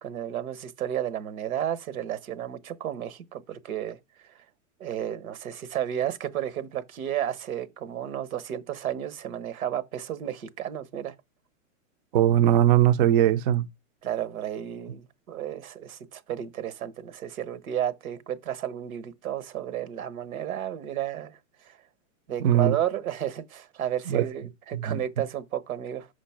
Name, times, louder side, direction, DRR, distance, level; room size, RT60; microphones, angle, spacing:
voice 1, 0.0-4.0 4.8-11.1 14.0-21.4 21.6-21.8 22.3-26.1, right 11 dB, 80° right, 1.3 m, -32 dB
voice 2, 12.1-13.7 22.4-22.8 24.1-24.2 24.7-25.0, right 11 dB, 40° right, 0.5 m, -20 dB
5.5 x 5.1 x 5.8 m
supercardioid pair, 155°, 41 cm